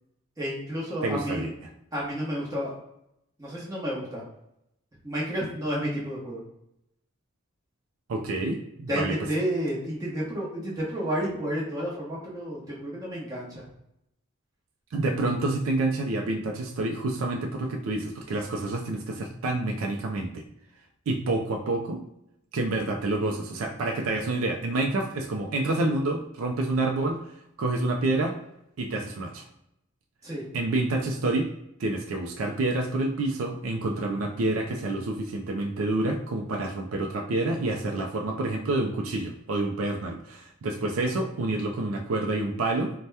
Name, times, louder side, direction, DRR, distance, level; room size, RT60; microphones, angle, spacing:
voice 1, 0.4-1.4 1.9-2.7 3.4-4.2 5.0-6.4 8.9-13.6 30.2-30.4, equal, 15° right, -6 dB, 0.8 m, -31 dB
voice 2, 1.0-1.5 8.1-9.1 14.9-20.4 21.1-22.0 22.5-27.2 27.6-28.4 28.8-29.5 30.5-31.5 31.8-42.9, right 2 dB, 85° right, 2 dB, 0.4 m, -28 dB
2.7 x 2.1 x 3.3 m, 0.80 s
head